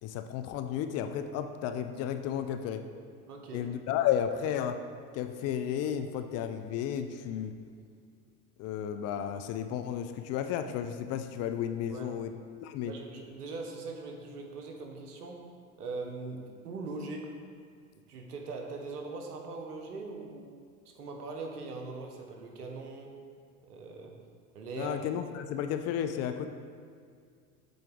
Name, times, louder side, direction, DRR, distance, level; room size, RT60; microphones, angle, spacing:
voice 1, 0.0-2.8 3.5-4.8 5.1-7.6 8.6-12.3 12.6-12.9 24.8-26.5, left 9 dB, 35° left, 8 dB, 0.4 m, -33 dB
voice 2, 3.3-3.7 11.9-12.1 12.9-15.4 15.8-17.3 17.9-20.5 20.9-23.2 23.7-24.2 24.5-25.0, right 3 dB, 85° right, 2 dB, 1.1 m, -41 dB
7.7 x 4.4 x 3.8 m, 2.2 s
hypercardioid pair, 85°, 45 cm